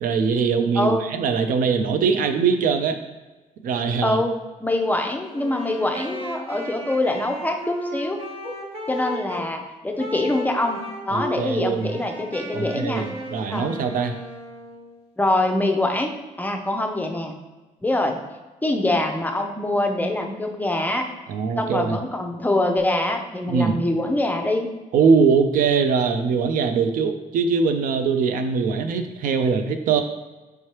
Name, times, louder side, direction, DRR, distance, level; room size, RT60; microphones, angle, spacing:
voice 1, 0.0-3.0 3.6-4.2 11.1-12.0 12.5-14.1 21.3-22.0 23.5-23.8 24.9-30.0, right 5 dB, 80° right, 8 dB, 0.4 m, -22 dB
voice 2, 0.8-1.1 4.0-4.3 4.6-8.2 8.4-8.5 8.9-10.8 11.1-13.1 13.5-13.7 15.2-16.1 16.4-17.3 17.8-18.2 18.6-21.1 21.6-24.7, left 1 dB, 10° left, 4 dB, 0.5 m, -24 dB
Wind instrument woodwind instrument, 5.3-9.5 10.0-11.4 11.8-15.0, left 1 dB, 50° right, 0.9 m, -35 dB
4.5 x 3.2 x 2.9 m, 1.1 s
cardioid pair, 100°, 14 cm